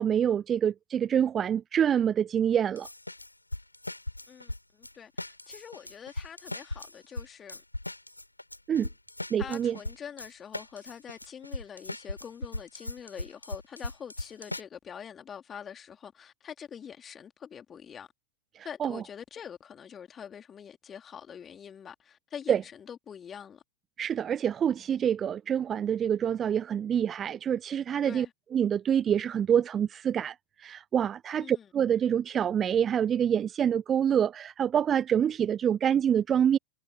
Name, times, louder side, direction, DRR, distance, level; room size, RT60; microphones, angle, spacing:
voice 1, 0.0-2.9 8.7-8.9 9.3-9.8 18.6-19.0 22.5-22.6 24.0-28.3 28.5-36.6, right 9 dB, 25° right, 0.5 m, -26 dB
sound 1, 2.8-4.9 5.2-14.6, left 2 dB, 85° left, 3.4 m, -38 dB
voice 2, 4.3-7.6 9.4-18.1 18.6-23.6 28.0-28.3 31.4-31.7, left 8 dB, 20° left, 3.2 m, -45 dB
figure-of-eight pair, 90°, 0 cm